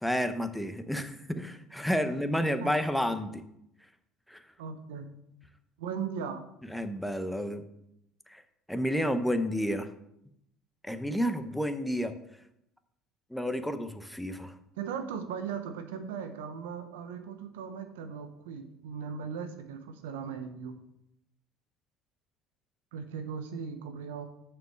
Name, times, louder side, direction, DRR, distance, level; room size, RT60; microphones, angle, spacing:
voice 1, 0.0-3.4 4.3-4.4 6.7-7.6 8.3-8.4 8.7-9.9 10.8-12.1 13.3-14.5, equal, 5° left, 9 dB, 0.8 m, -30 dB
voice 2, 4.6-5.1 5.8-6.4 14.8-20.8 22.9-24.3, right 6 dB, 90° right, 8 dB, 0.9 m, -38 dB
6.4 x 4.7 x 6.4 m, 0.78 s
supercardioid pair, 85°, 0 cm